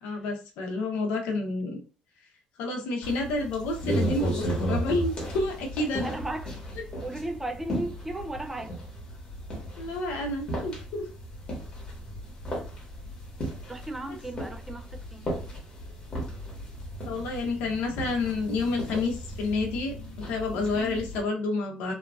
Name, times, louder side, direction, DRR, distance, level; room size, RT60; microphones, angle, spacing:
voice 1, 0.0-1.8 2.6-6.1 9.8-11.1 17.0-21.9, left 3 dB, 85° left, 0.8 m, -29 dB
sound 1, 3.0-21.2, right 1 dB, 35° left, 1.1 m, -35 dB
voice 2, 6.0-6.6 7.0-8.8 13.7-15.3, right 1 dB, 10° right, 0.3 m, -35 dB
2.9 x 2.4 x 2.4 m
cardioid pair, 135°, 3 cm